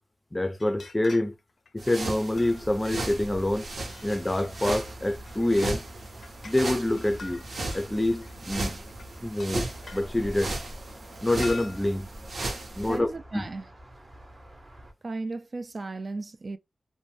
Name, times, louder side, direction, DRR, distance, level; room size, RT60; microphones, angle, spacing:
voice 1, 0.3-1.4 1.7-3.7 4.0-5.8 6.4-7.4 7.7-8.8 9.2-10.6 11.2-12.1 12.8-13.5, left 1 dB, 20° left, 0.4 m, -26 dB
sound 1, 0.6-1.4 1.7-3.1 3.8-4.9 5.2-5.8 6.1-6.6 7.0-8.3 8.9-10.1 11.3-12.0, left 4 dB, 75° left, 0.4 m, -46 dB
sound 2, 1.8-13.0, right 2 dB, 75° right, 0.8 m, -36 dB
sound 3, 2.3-14.9, equal, 35° right, 0.7 m, -46 dB
voice 2, 12.5-13.7 15.0-16.6, right 3 dB, 50° right, 0.3 m, -36 dB
2.6 x 2.1 x 3.0 m
cardioid pair, 70°, 0 cm